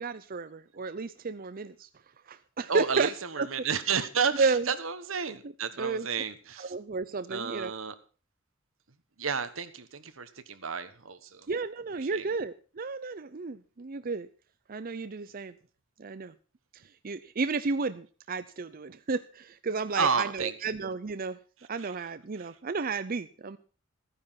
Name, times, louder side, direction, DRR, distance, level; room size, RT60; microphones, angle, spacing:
voice 1, 0.0-1.9 2.3-3.1 3.4-3.5 4.4-4.7 5.8-6.1 6.6-7.7 11.5-14.3 14.7-15.5 16.0-16.3 17.0-21.4 21.7-23.6, right 4 dB, 45° right, 12 dB, 0.6 m, -32 dB
voice 2, 2.7-6.7 7.3-7.9 9.2-11.5 11.9-12.3 19.9-20.5 21.8-22.6, right 6 dB, 85° right, 11 dB, 1.4 m, -32 dB
14.5 x 9.8 x 5.8 m, 0.38 s
head